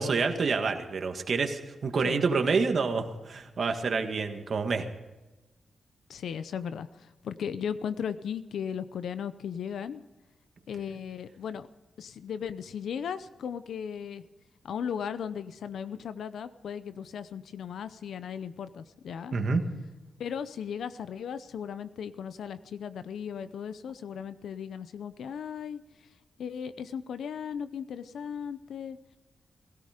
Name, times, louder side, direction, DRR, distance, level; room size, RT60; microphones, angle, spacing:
voice 1, 0.0-4.9 19.3-19.6, right 4 dB, 50° right, 5 dB, 1.8 m, -28 dB
voice 2, 6.1-10.0 10.7-11.7 12.0-14.2 14.6-19.4 20.2-26.1 26.4-29.0, left 7 dB, 85° left, 13 dB, 0.6 m, -36 dB
17.5 x 16.0 x 5.1 m, 1.1 s
wide cardioid pair, 140°, 0 cm